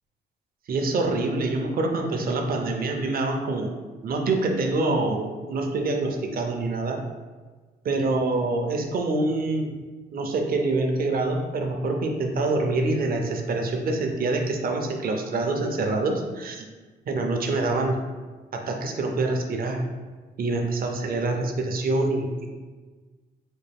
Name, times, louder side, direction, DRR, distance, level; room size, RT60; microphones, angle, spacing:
voice 1, 0.7-3.8 4.0-7.0 7.8-9.7 10.1-16.6 17.1-18.0 18.5-19.8 20.4-22.5, right 2 dB, 55° right, 3 dB, 0.6 m, -25 dB
4.2 x 2.2 x 3.4 m, 1.3 s
cardioid pair, 85°, 19 cm